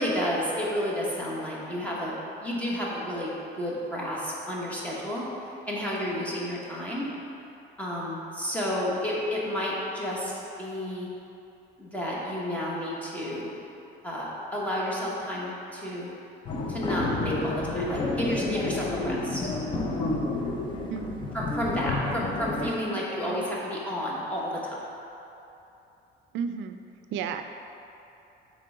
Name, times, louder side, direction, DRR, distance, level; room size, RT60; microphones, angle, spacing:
voice 1, 0.0-2.1 2.4-5.3 5.6-7.1 7.8-11.1 11.8-13.5 14.0-16.1 16.7-19.4 21.3-24.8, equal, 5° left, -6 dB, 1.0 m, -31 dB
sound 1, 16.5-22.7, left 2 dB, 25° left, 0.5 m, -30 dB
voice 2, 20.9-21.3 22.0-22.3 22.6-23.5 26.3-26.8 27.1-27.4, right 7 dB, 80° right, 8 dB, 0.4 m, -35 dB
7.4 x 3.1 x 4.8 m, 2.9 s
cardioid pair, 170°, 19 cm